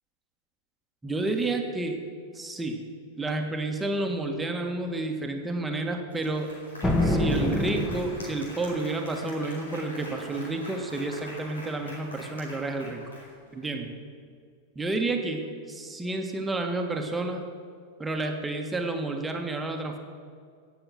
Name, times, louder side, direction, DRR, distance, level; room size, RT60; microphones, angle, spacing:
voice 1, 1.0-2.0 2.3-2.8 3.2-6.5 7.0-13.0 13.5-13.9 14.7-17.4 18.0-20.0, right 2 dB, 10° right, 3 dB, 1.6 m, -30 dB
Applause, 5.7-5.8 6.1-13.6, equal, 75° left, 4.6 m, -44 dB
sound 1, 6.8-8.6, left 1 dB, 10° left, 1.5 m, -26 dB
17.5 x 7.2 x 7.6 m, 2.1 s
figure-of-eight pair, 90°, 0 cm